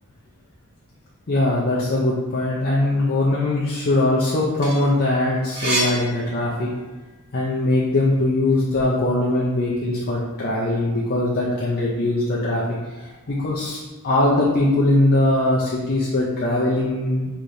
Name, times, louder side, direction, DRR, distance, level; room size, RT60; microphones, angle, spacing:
voice 1, 1.3-6.7 7.3-17.3, left 1 dB, 45° left, -5 dB, 0.5 m, -21 dB
sound 1, 4.6-7.0 7.5-8.9, right 1 dB, 50° right, 1.4 m, -29 dB
4.7 x 2.9 x 2.6 m, 1.2 s
head